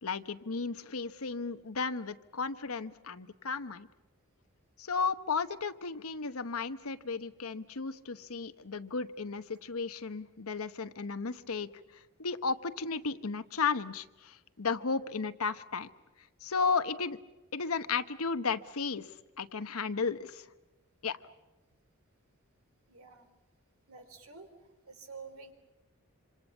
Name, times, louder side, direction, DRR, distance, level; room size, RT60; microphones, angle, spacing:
voice 1, 0.0-3.9 4.8-11.7 12.2-15.9 16.4-17.2 17.5-19.1 19.4-20.4 21.0-21.2, left 5 dB, 85° left, 11 dB, 1.1 m, -34 dB
voice 2, 22.9-23.2 23.9-24.5 24.9-25.5, right 4 dB, 80° right, 7 dB, 3.7 m, -49 dB
26.5 x 26.5 x 7.2 m, 1.1 s
head